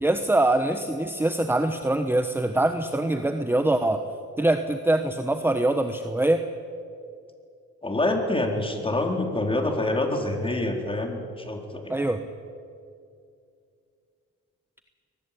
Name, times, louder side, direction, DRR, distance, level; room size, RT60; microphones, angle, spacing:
voice 1, 0.0-4.0 4.4-6.4 11.9-12.2, right 1 dB, 5° right, 8 dB, 1.2 m, -23 dB
voice 2, 7.8-11.9, left 2 dB, 15° left, 3 dB, 4.2 m, -26 dB
23.0 x 19.5 x 8.6 m, 2.4 s
cardioid pair, 90°, 30 cm